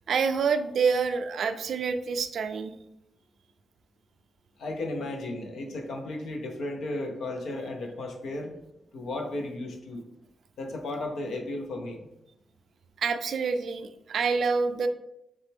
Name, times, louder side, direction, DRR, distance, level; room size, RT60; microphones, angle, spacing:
voice 1, 0.1-2.7 13.0-14.9, right 5 dB, 75° right, 9 dB, 0.3 m, -27 dB
voice 2, 4.6-8.5 8.9-10.0 10.6-12.1, left 2 dB, 80° left, 2 dB, 0.7 m, -34 dB
4.0 x 3.2 x 3.5 m, 0.83 s
supercardioid pair, 50°, 0 cm